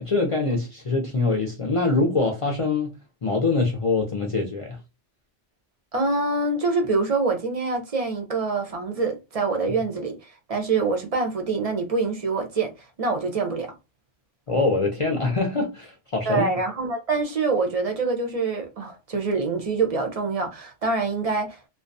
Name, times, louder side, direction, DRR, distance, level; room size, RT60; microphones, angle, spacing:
voice 1, 0.0-2.9 3.2-4.8 14.5-16.5, left 3 dB, 50° left, 0.3 m, -24 dB
voice 2, 5.9-13.7 16.3-21.6, right 3 dB, 45° right, 0.5 m, -25 dB
2.3 x 2.2 x 2.5 m
omnidirectional pair, 1.3 m